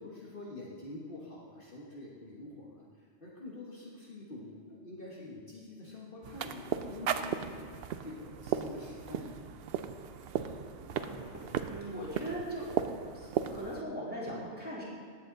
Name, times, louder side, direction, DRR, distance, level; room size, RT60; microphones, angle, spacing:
voice 1, 0.0-7.7 8.0-9.4, left 2 dB, 50° left, -4 dB, 1.7 m, -46 dB
sound 1, 6.2-13.8, right 8 dB, 65° right, 0.8 m, -36 dB
voice 2, 10.8-12.7 13.1-14.8, right 1 dB, 10° right, -8 dB, 3.1 m, -40 dB
17.5 x 7.8 x 3.9 m, 2.2 s
omnidirectional pair, 1.2 m